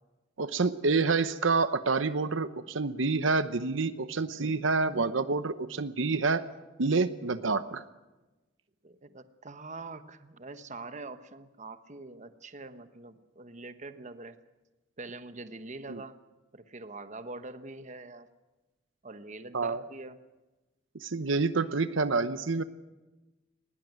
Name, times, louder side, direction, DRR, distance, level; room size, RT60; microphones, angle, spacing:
voice 1, 0.4-6.4 6.8-7.8 15.9-16.0 19.5-19.8 21.0-22.6, right 4 dB, 75° right, 12 dB, 0.9 m, -28 dB
voice 2, 8.8-14.4 15.0-16.2 16.5-18.3 19.0-20.2, right 3 dB, 40° right, 11 dB, 1.1 m, -44 dB
20.0 x 18.0 x 9.4 m, 1.1 s
head